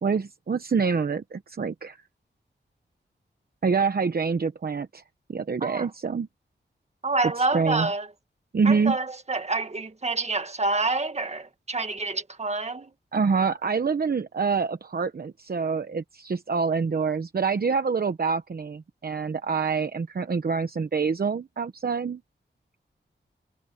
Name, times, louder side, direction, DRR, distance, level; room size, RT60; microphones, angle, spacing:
voice 1, 0.0-2.0 3.6-5.0 5.3-6.3 7.4-7.9 8.5-9.0 13.1-22.2, right 5 dB, 55° right, 1.0 m, -26 dB
voice 2, 7.0-8.1 8.7-12.9, right 3 dB, 35° right, 1.8 m, -27 dB
wide cardioid pair, 95°, 19 cm